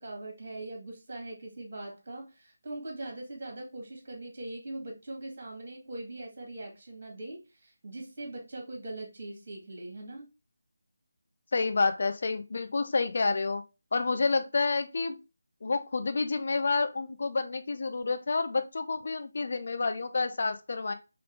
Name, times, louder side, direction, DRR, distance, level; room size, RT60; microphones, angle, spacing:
voice 1, 0.0-10.3, right 2 dB, 40° right, 0 dB, 2.2 m, -41 dB
voice 2, 11.5-13.6 13.9-15.2 15.6-20.9, left 3 dB, 50° left, 8 dB, 0.6 m, -29 dB
5.6 x 2.6 x 3.3 m, 0.28 s
figure-of-eight pair, 155°, 0 cm